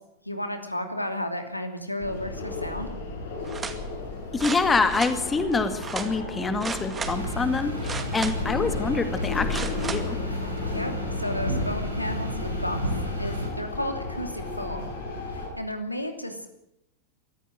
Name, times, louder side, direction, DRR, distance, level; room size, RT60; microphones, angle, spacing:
voice 1, 0.2-2.9 10.7-10.9 11.2-12.8 13.2-14.9 15.3-16.5, left 1 dB, 85° left, 6 dB, 2.7 m, -33 dB
sound 1, 2.0-15.5, left 3 dB, 60° left, 7.6 m, -34 dB
sound 2, 3.4-3.8 4.4-5.2 5.8-6.1 6.6-7.2 7.8-8.5 9.5-10.0 10.6-10.7, right 5 dB, 20° right, 2.2 m, -34 dB
voice 2, 4.3-10.2, left 4 dB, 15° left, 9 dB, 2.0 m, -26 dB
sound 3, 7.0-13.5, left 1 dB, 90° right, 6.7 m, -31 dB
23.5 x 15.0 x 7.7 m, 0.83 s
figure-of-eight pair, 90°, 0 cm